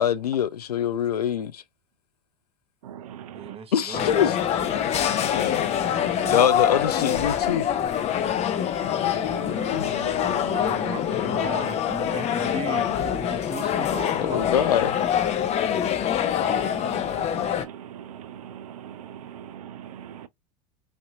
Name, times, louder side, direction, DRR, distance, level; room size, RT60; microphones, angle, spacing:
voice 1, 0.0-1.6 3.7-4.4 5.3-5.7 6.2-7.7 9.7-10.0 13.8-13.9 14.2-15.0, left 9 dB, 85° left, 0.4 m, -24 dB
voice 2, 2.8-3.6 4.7-4.8 5.8-6.1 7.2-7.3 9.0-10.7 16.4-20.3, right 10 dB, 70° right, 0.6 m, -41 dB
voice 3, 3.3-4.3 5.9-6.5 10.5-14.8, right 6 dB, 30° right, 0.9 m, -37 dB
sound 1, 3.9-17.6, left 9 dB, 35° left, 0.6 m, -25 dB
3.2 x 2.7 x 2.6 m
figure-of-eight pair, 80°, 20 cm